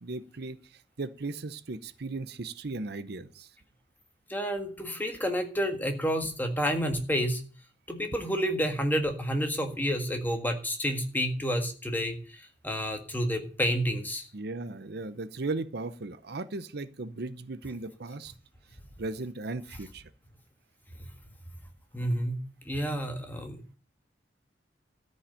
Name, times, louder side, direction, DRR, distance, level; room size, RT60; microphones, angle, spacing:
voice 1, 0.0-3.5 14.3-18.3 19.0-20.1, right 3 dB, 60° right, 13 dB, 0.7 m, -37 dB
voice 2, 4.3-7.4 7.9-14.3 21.0-21.1 21.9-22.4 22.7-23.6, equal, 10° left, 4 dB, 1.7 m, -30 dB
13.5 x 5.5 x 8.7 m, 0.40 s
head